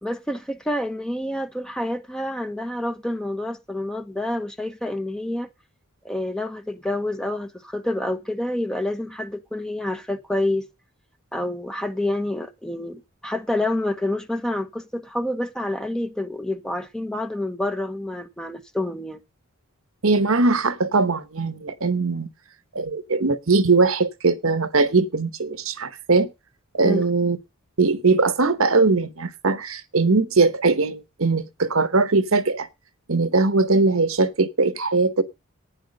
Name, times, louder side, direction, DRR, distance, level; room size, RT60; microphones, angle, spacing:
voice 1, 0.0-5.5 6.0-10.7 11.3-19.2 26.8-27.0, left 1 dB, 5° left, 1.1 m, -28 dB
voice 2, 20.0-22.3 22.7-26.3 26.7-27.4 27.8-32.7 33.1-35.2, right 3 dB, 70° right, 1.1 m, -20 dB
11.5 x 9.7 x 5.3 m
head